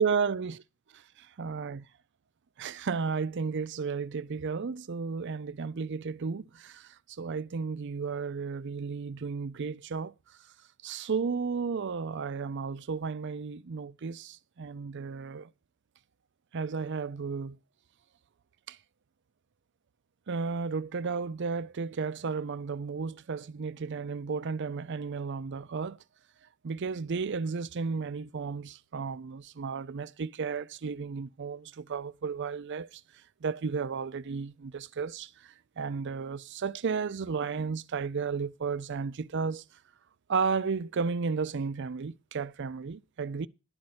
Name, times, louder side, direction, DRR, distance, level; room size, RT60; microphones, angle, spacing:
voice 1, 0.0-0.6 0.9-1.9 2.6-10.1 10.8-15.5 16.5-17.6 18.7-18.8 20.3-26.0 26.6-33.0 33.4-39.6 40.3-43.5, right 5 dB, 55° right, 0.5 m, -33 dB
11.5 x 4.3 x 7.9 m
head